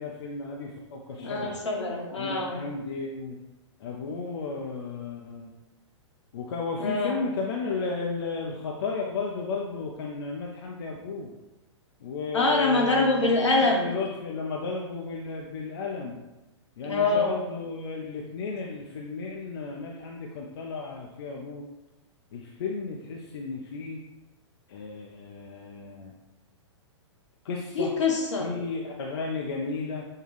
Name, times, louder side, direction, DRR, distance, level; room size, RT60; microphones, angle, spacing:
voice 1, 0.0-1.6 2.2-3.4 3.8-5.5 6.3-11.3 12.0-16.2 16.8-21.6 22.3-24.0 24.7-26.1 27.4-27.9 28.4-30.0, left 4 dB, 55° left, -1 dB, 0.5 m, -34 dB
voice 2, 1.2-2.6 6.8-7.1 12.3-13.9 16.8-17.3 27.8-28.5, left 3 dB, 70° left, 0 dB, 1.1 m, -24 dB
6.5 x 2.3 x 3.2 m, 1.0 s
figure-of-eight pair, 110°, 15 cm